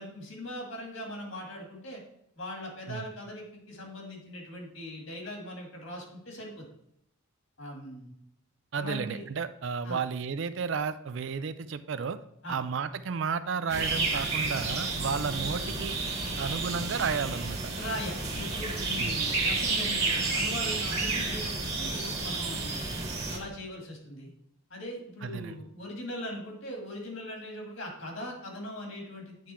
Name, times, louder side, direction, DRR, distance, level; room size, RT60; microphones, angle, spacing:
voice 1, 0.0-2.0 2.4-6.6 7.6-8.1 8.7-9.2 9.8-10.0 12.4-12.6 15.0-15.1 17.7-22.8 23.3-24.3 24.7-29.5, left 1 dB, 65° left, 0 dB, 2.0 m, -40 dB
voice 2, 8.7-12.2 12.5-16.0 16.4-17.7 19.0-19.2 25.2-25.6, right 6 dB, 60° right, 12 dB, 0.4 m, -32 dB
sound 1, 13.7-23.4, right 3 dB, 30° right, 1.6 m, -31 dB
9.1 x 3.7 x 4.3 m, 0.76 s
head